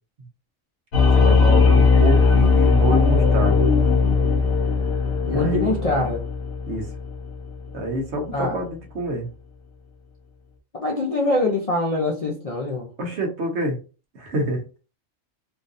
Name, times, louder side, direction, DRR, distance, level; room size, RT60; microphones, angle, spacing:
sound 1, 0.9-7.7, left 4 dB, 85° left, 1.3 m, -18 dB
voice 1, 0.9-3.7 5.2-6.1 6.7-6.9 7.7-9.3 13.0-13.8 14.1-14.6, right 1 dB, 60° right, 2 dB, 1.1 m, -27 dB
voice 2, 5.2-6.2 8.3-8.6 10.8-12.9, left 2 dB, 50° left, -1 dB, 0.4 m, -23 dB
3.7 x 2.6 x 2.5 m, 0.34 s
omnidirectional pair, 1.4 m